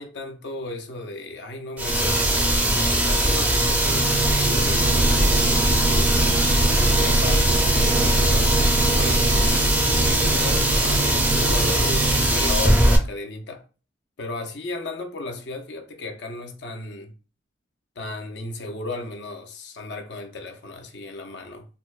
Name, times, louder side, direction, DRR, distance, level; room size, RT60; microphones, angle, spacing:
voice 1, 0.0-6.3 6.7-11.1 11.4-13.6 14.2-17.1 18.0-21.7, left 2 dB, 70° left, 0.6 m, -35 dB
sound 1, 1.8-13.0, right 1 dB, 10° right, 0.4 m, -20 dB
sound 2, 3.8-12.4, right 2 dB, 80° right, 0.6 m, -25 dB
4.2 x 2.0 x 2.3 m
head